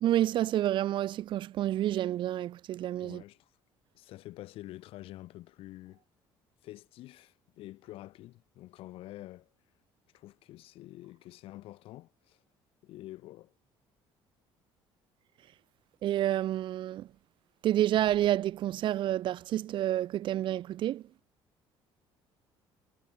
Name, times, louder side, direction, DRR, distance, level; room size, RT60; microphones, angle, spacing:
voice 1, 0.0-3.2 16.0-17.1 17.6-21.0, right 12 dB, 55° right, 1.0 m, -29 dB
voice 2, 3.0-3.5 3.9-6.0 6.6-9.5 10.1-12.4 12.8-13.5, left 16 dB, 70° left, 3.9 m, -47 dB
cardioid pair, 130°, 10 cm